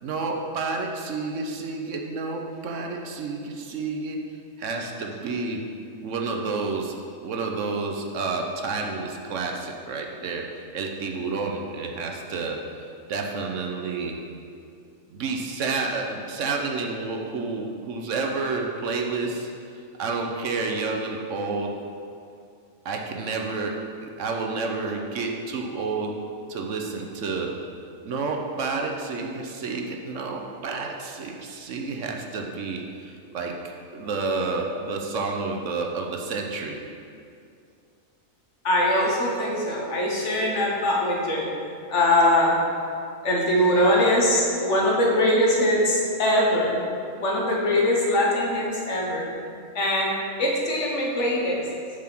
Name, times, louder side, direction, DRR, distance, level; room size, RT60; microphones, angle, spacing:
voice 1, 0.0-4.2 4.6-5.7 6.0-7.0 7.2-12.6 13.1-14.2 15.1-19.5 20.0-21.7 22.8-26.2 26.5-27.5 28.0-33.6 33.9-36.8, right 4 dB, 65° right, 2 dB, 1.1 m, -30 dB
voice 2, 38.6-41.5 41.9-42.5 43.2-46.8 47.2-49.3 49.7-51.6, left 1 dB, 60° left, -2 dB, 1.5 m, -22 dB
7.2 x 5.0 x 5.9 m, 2.4 s
omnidirectional pair, 1.4 m